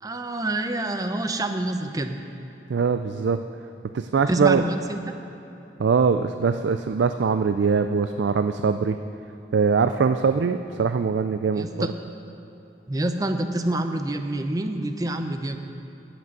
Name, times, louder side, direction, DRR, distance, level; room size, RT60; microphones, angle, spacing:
voice 1, 0.0-2.2 4.3-5.0 11.5-11.9 12.9-15.6, right 1 dB, 20° right, 7 dB, 0.6 m, -27 dB
voice 2, 2.7-3.4 3.9-4.6 5.8-9.0 9.5-11.9, right 5 dB, 75° right, 9 dB, 0.4 m, -22 dB
16.5 x 6.0 x 6.7 m, 2.9 s
head